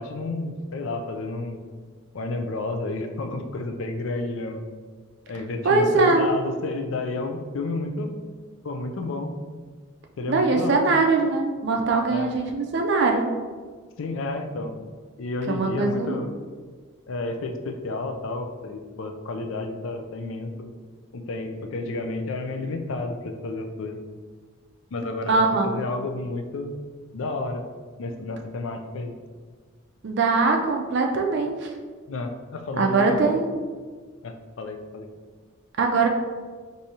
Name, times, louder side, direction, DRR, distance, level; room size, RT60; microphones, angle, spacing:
voice 1, 0.0-1.6 2.1-4.6 5.3-8.2 8.6-9.3 10.2-10.9 12.1-12.3 14.0-14.8 15.2-16.3 17.1-20.7 21.1-24.0 24.9-26.7 27.1-27.6 28.0-29.1 32.1-33.3 34.2-35.1, left 2 dB, 65° left, 5 dB, 0.4 m, -31 dB
voice 2, 5.6-6.2 10.3-13.3 15.5-16.3 25.3-25.7 30.0-31.7 32.8-33.6 35.8-36.1, right 3 dB, 55° right, 3 dB, 0.4 m, -22 dB
4.7 x 2.7 x 2.8 m, 1.5 s
head